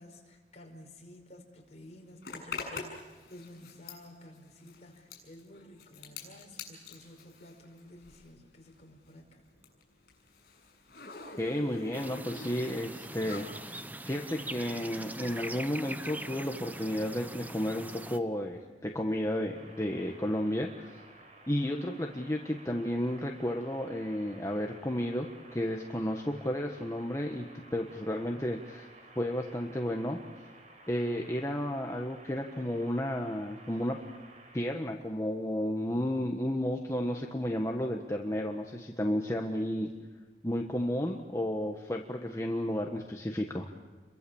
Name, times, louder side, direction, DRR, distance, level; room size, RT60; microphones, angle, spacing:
voice 1, 0.0-9.4, left 1 dB, 40° left, 1 dB, 5.2 m, -52 dB
Zipper (clothing), 2.2-8.4 8.7-13.6, left 4 dB, 60° left, 7.0 m, -45 dB
voice 2, 11.4-20.9 21.5-27.5 27.7-28.9 29.1-30.2 30.9-34.0 34.5-39.9 40.4-43.7, left 1 dB, 15° left, 1 dB, 1.4 m, -32 dB
sound 1, 11.9-18.2, right 1 dB, 10° right, 0.9 m, -42 dB
sound 2, 19.5-34.5, right 2 dB, 40° right, 4.7 m, -55 dB
29.5 x 23.5 x 7.2 m, 1.4 s
head